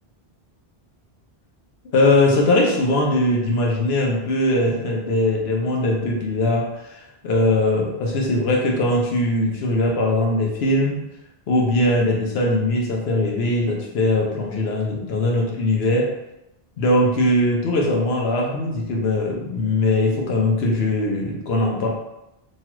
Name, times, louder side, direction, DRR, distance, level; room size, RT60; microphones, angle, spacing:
voice 1, 1.9-11.0 11.5-16.1 16.8-21.9, left 2 dB, 75° left, -1 dB, 1.0 m, -20 dB
3.0 x 2.4 x 2.9 m, 0.89 s
omnidirectional pair, 1.1 m